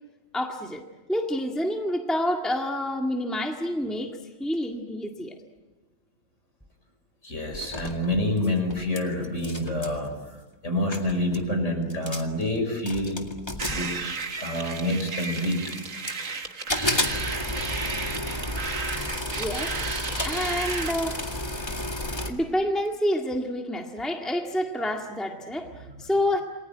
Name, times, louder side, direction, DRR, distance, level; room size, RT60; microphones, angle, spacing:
voice 1, 0.3-0.8 1.1-5.4 19.4-19.7 20.2-21.2 22.3-26.4, left 1 dB, ahead, 2 dB, 1.8 m, -28 dB
voice 2, 7.2-10.1 10.6-13.2 13.7-13.9 14.4-15.6, left 1 dB, 45° left, 4 dB, 5.9 m, -27 dB
sound 1, 7.5-9.0 9.2-10.0 10.6-10.7 10.9-11.5 11.9-12.4 12.8-14.6 15.2-16.3 16.7-22.3, left 1 dB, 15° left, 2.0 m, -32 dB
sound 2, 13.6-20.9, right 4 dB, 55° right, 1.9 m, -33 dB
28.5 x 21.0 x 9.3 m, 1.2 s
omnidirectional pair, 1.7 m